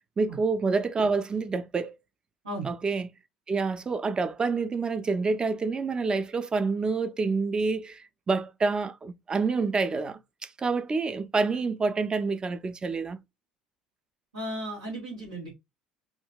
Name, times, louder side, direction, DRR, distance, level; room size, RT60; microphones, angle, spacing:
voice 1, 0.2-1.9 2.6-3.1 3.5-8.0 8.3-10.2 10.6-13.2, right 4 dB, 25° right, 0.4 m, -27 dB
voice 2, 14.3-15.5, right 1 dB, 90° right, 1.2 m, -35 dB
3.7 x 2.2 x 2.3 m
hypercardioid pair, 65°, 3 cm